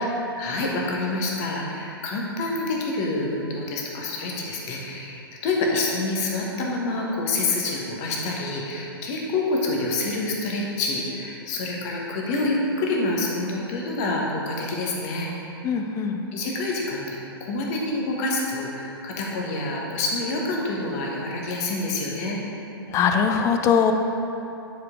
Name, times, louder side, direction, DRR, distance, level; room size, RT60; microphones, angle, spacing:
voice 1, 0.2-15.3 16.3-22.4, left 2 dB, 40° left, -2 dB, 1.3 m, -27 dB
voice 2, 15.6-16.2 22.9-23.9, left 7 dB, 25° left, 6 dB, 0.4 m, -21 dB
9.9 x 4.8 x 3.7 m, 2.9 s
figure-of-eight pair, 110°, 13 cm